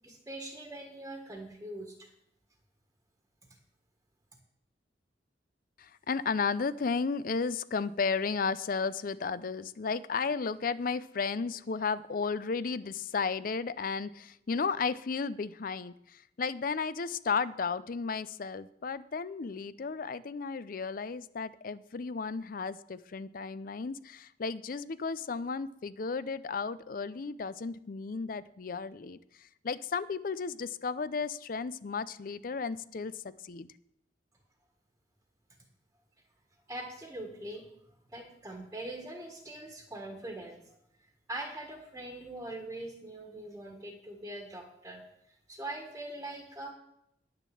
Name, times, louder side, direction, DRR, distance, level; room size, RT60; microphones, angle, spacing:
voice 1, 0.0-2.1 36.7-37.7 38.1-40.8 41.3-45.0 45.3-46.7, right 1 dB, 15° right, 1 dB, 1.6 m, -42 dB
voice 2, 5.8-33.7, left 5 dB, 50° left, 17 dB, 0.5 m, -34 dB
10.0 x 6.7 x 7.7 m, 0.79 s
head